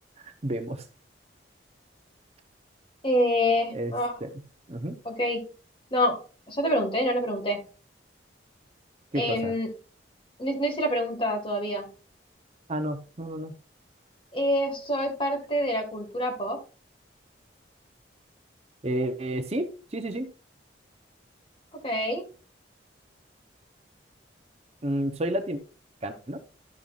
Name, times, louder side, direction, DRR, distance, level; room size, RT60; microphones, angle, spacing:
voice 1, 0.2-0.9 3.7-3.9 4.2-4.3 4.7-5.0 9.1-9.5 12.7-13.5 18.8-20.3 24.8-25.6 26.0-26.4, right 1 dB, 35° right, 7 dB, 0.7 m, -30 dB
voice 2, 3.0-4.2 5.1-5.4 5.9-6.2 6.5-7.6 9.1-9.7 10.4-11.9 14.3-16.6 21.8-22.2, equal, 30° left, 2 dB, 1.7 m, -26 dB
12.0 x 5.5 x 2.4 m, 0.35 s
head